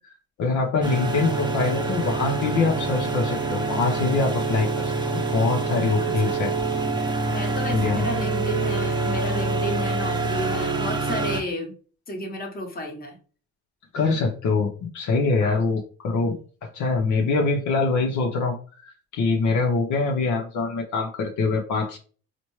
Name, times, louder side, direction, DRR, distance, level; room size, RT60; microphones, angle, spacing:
voice 1, 0.4-6.5 7.7-8.1 13.9-16.4 16.6-22.0, left 4 dB, 75° left, 1 dB, 0.8 m, -24 dB
sound 1, 0.8-11.4, right 3 dB, 15° right, 0.6 m, -26 dB
voice 2, 6.0-6.4 7.3-11.7 12.1-13.2 15.4-15.6, equal, 30° left, 1 dB, 1.2 m, -32 dB
4.1 x 2.2 x 3.1 m, 0.39 s
cardioid pair, 90°, 30 cm